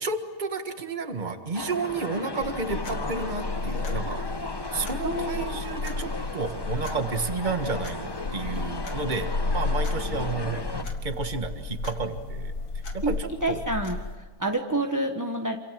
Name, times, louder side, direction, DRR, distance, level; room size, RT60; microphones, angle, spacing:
voice 1, 0.0-4.2 4.7-9.3 9.5-10.6 11.0-12.5 12.9-13.7, right 4 dB, 30° right, 7 dB, 1.7 m, -31 dB
sound 1, 1.5-10.8, left 2 dB, 20° left, 1.1 m, -36 dB
sound 2, 2.4-14.2, left 3 dB, 90° left, 2.7 m, -33 dB
voice 2, 5.0-5.6 13.0-13.2 13.4-14.0 14.4-15.6, right 2 dB, 15° right, 4 dB, 1.2 m, -27 dB
28.0 x 27.5 x 7.6 m, 1.3 s
omnidirectional pair, 1.6 m